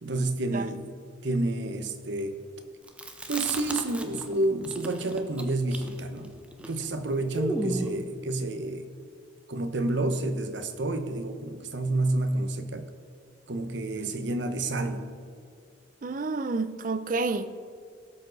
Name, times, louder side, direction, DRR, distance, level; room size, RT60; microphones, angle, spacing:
voice 1, 0.0-0.9 1.2-2.4 3.3-6.3 6.6-8.9 9.5-12.8 13.5-15.1, right 2 dB, 70° right, 8 dB, 0.9 m, -29 dB
Chewing mastication, 2.9-4.3 4.6-8.0, right 1 dB, 5° right, 0.7 m, -34 dB
voice 2, 16.0-17.6, right 3 dB, 45° right, 13 dB, 0.5 m, -30 dB
17.0 x 7.2 x 4.0 m, 2.2 s
head